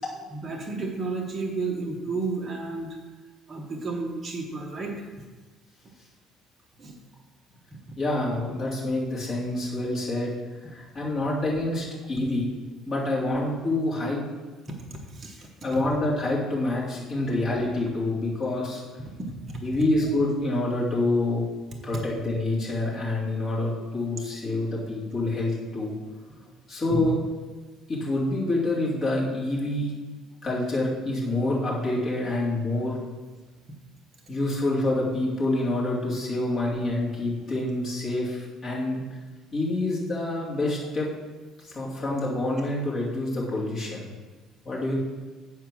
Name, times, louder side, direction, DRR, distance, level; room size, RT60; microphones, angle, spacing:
voice 1, 0.3-3.0 3.5-5.1 6.8-7.0 7.7-7.8 14.7-15.8 17.1-17.3 19.5-19.6 20.0-20.1 24.4-24.6 26.9-27.0, right 3 dB, 20° right, -1 dB, 1.0 m, -32 dB
voice 2, 8.0-10.3 10.6-12.5 12.9-14.2 15.6-18.8 19.6-21.5 21.8-25.9 26.7-27.2 27.9-29.9 30.4-33.0 34.3-39.0 39.5-41.1 41.6-44.1 44.6-45.0, left 2 dB, 25° left, -6 dB, 2.6 m, -27 dB
8.8 x 4.8 x 6.1 m, 1.3 s
cardioid pair, 170°, 0 cm